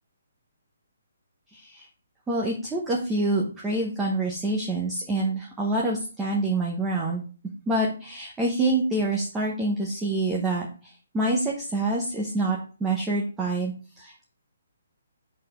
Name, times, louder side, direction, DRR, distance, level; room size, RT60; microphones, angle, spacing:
voice 1, 1.5-1.9 2.3-7.2 7.7-14.3, right 2 dB, 10° right, -4 dB, 0.8 m, -26 dB
4.8 x 4.1 x 5.6 m, 0.37 s
hypercardioid pair, 165°, 0 cm